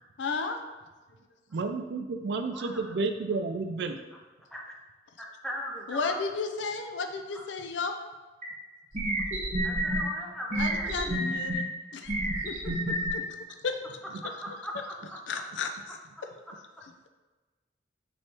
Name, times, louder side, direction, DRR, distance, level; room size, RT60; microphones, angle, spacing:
voice 1, 0.2-0.6 5.9-8.0 10.6-11.7 11.9-12.2 12.5-13.2 13.6-13.8 15.3-16.0, left 4 dB, 85° left, 6 dB, 0.4 m, -33 dB
voice 2, 1.5-4.0, right 3 dB, 65° right, 7 dB, 0.4 m, -31 dB
voice 3, 5.2-6.2 7.3-7.4 9.6-10.9 14.4-15.2, equal, ahead, -2 dB, 0.5 m, -39 dB
sound 1, 8.4-8.5 8.9-10.0 10.5-11.6 12.1-13.1, right 1 dB, 40° right, 0.9 m, -29 dB
4.7 x 3.1 x 2.9 m, 1.2 s
head